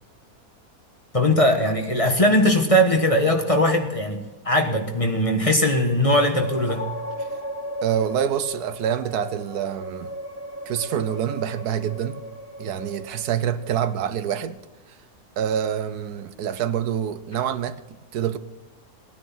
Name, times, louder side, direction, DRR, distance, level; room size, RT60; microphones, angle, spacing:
voice 1, 1.1-6.8, equal, 25° left, 1.3 m, -20 dB
sound 1, 6.4-14.5, equal, 40° left, 1.7 m, -35 dB
voice 2, 7.8-10.1 10.7-12.2 12.6-14.6 15.4-18.4, right 9 dB, 90° right, 1.3 m, -26 dB
18.5 x 10.0 x 5.7 m
omnidirectional pair, 1.6 m